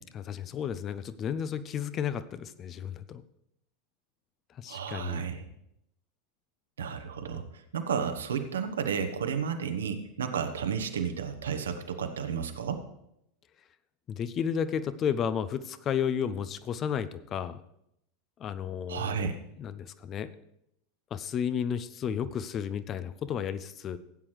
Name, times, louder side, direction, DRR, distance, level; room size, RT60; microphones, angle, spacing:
voice 1, 0.1-3.2 4.5-5.3 14.1-17.6 18.4-20.3 21.1-24.0, left 8 dB, 30° left, 13 dB, 0.6 m, -33 dB
voice 2, 4.7-5.5 6.8-7.4 7.7-12.8 18.9-19.3, right 7 dB, 70° right, 7 dB, 1.1 m, -32 dB
16.0 x 8.7 x 3.2 m, 0.79 s
figure-of-eight pair, 85°, 0 cm